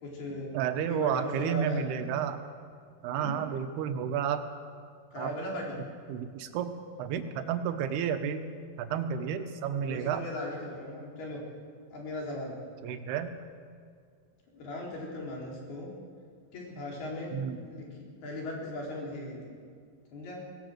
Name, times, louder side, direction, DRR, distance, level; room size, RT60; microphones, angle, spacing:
voice 1, 0.0-0.5 0.8-1.8 3.2-3.4 5.1-5.8 8.9-9.0 9.9-11.4 11.9-12.5 14.5-15.9 16.5-17.3 17.6-17.9 18.2-19.5 20.1-20.4, left 1 dB, 70° left, -2 dB, 6.0 m, -38 dB
voice 2, 0.5-2.4 3.0-4.5 5.2-5.3 6.1-6.7 7.0-8.4 8.8-10.2 12.8-13.3 17.3-17.6, right 8 dB, 75° right, 7 dB, 3.1 m, -31 dB
19.0 x 18.5 x 7.9 m, 2.1 s
omnidirectional pair, 4.8 m